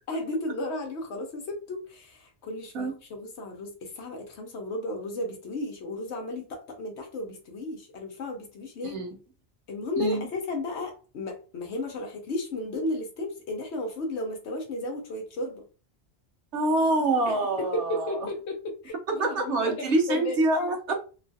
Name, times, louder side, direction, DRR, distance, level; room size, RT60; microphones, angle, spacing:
voice 1, 0.1-9.0 9.7-15.6 17.3-20.4, left 2 dB, 70° left, 2 dB, 1.0 m, -34 dB
voice 2, 8.8-9.2 10.0-10.3 16.5-18.2 19.2-20.9, right 2 dB, 80° right, 2 dB, 1.2 m, -26 dB
3.0 x 2.4 x 2.6 m, 0.36 s
omnidirectional pair, 1.2 m